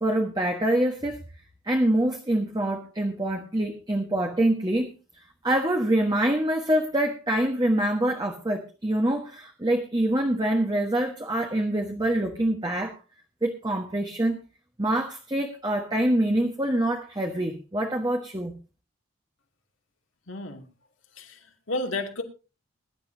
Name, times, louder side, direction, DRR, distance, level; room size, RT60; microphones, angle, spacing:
voice 1, 0.0-1.2 1.6-4.9 5.4-13.0 13.4-14.4 14.8-18.5, right 1 dB, 20° right, 2 dB, 1.4 m, -25 dB
voice 2, 20.3-20.7 21.2-22.2, left 2 dB, 70° left, 3 dB, 2.6 m, -32 dB
22.0 x 11.0 x 2.8 m, 0.31 s
head